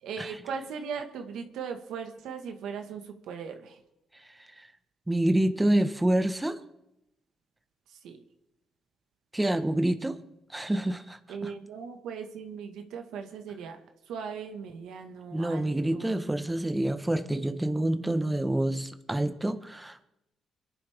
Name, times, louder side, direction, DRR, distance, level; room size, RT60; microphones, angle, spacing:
voice 1, 0.0-3.8 8.0-8.2 11.3-13.8 14.1-16.1, right 6 dB, 85° right, 5 dB, 1.7 m, -38 dB
voice 2, 4.1-4.7 5.1-6.6 9.3-10.2 10.5-11.5 15.3-20.0, right 1 dB, 10° right, 7 dB, 1.3 m, -27 dB
25.5 x 11.0 x 3.7 m, 0.87 s
cardioid pair, 90°, 0 cm